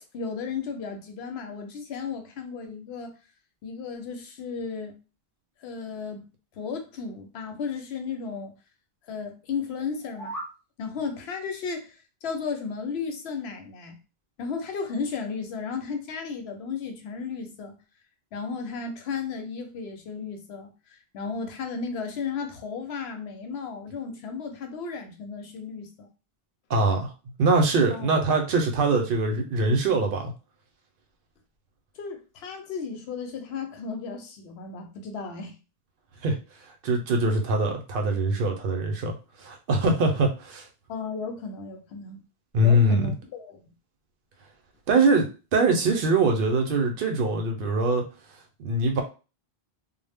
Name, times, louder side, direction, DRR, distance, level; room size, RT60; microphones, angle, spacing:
voice 1, 0.1-3.1 3.6-5.0 5.6-6.3 6.6-8.5 9.1-10.3 10.8-14.0 14.4-17.7 18.3-26.1 27.9-28.1 32.0-35.5 40.9-42.2 42.6-43.6, left 5 dB, 90° left, 0.9 m, -34 dB
sound 1, 9.9-10.6, right 1 dB, 5° left, 0.7 m, -37 dB
voice 2, 26.7-27.1 27.4-30.3 36.2-36.4 36.6-40.6 42.5-43.1 44.9-48.0 48.6-49.0, right 2 dB, 65° right, 0.7 m, -23 dB
2.0 x 2.0 x 3.3 m
omnidirectional pair, 1.0 m